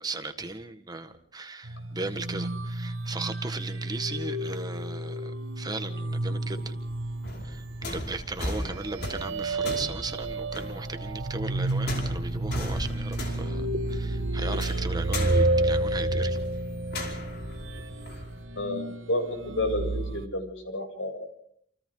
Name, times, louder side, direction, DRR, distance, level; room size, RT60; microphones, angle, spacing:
voice 1, 0.0-6.7 7.4-16.4, right 3 dB, 20° right, 8 dB, 1.6 m, -37 dB
sound 1, 1.6-20.3, right 2 dB, 80° right, 1.5 m, -31 dB
sound 2, 6.4-18.4, left 1 dB, 60° left, 5.3 m, -38 dB
voice 2, 19.1-21.3, left 1 dB, 80° left, 4 dB, 7.3 m, -30 dB
29.0 x 28.5 x 3.9 m, 0.63 s
head